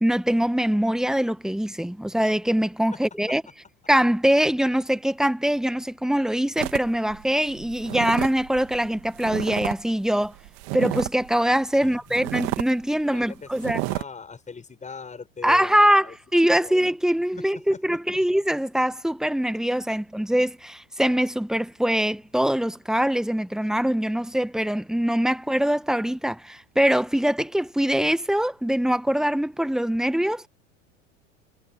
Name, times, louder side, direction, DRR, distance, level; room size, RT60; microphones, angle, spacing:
voice 1, 0.0-3.4 3.9-10.3 10.7-13.8 15.4-30.4, equal, ahead, 1.4 m, -23 dB
sound 1, 6.6-9.8 10.1-11.3 11.7-11.8 12.1-12.7 13.1-13.2 13.6-14.0, right 29 dB, 55° right, 2.5 m, -31 dB
voice 2, 11.8-12.2 13.1-16.2 16.5-16.8 17.4-17.5 17.7-17.8, left 5 dB, 15° left, 7.5 m, -41 dB
hypercardioid pair, 90°, 40 cm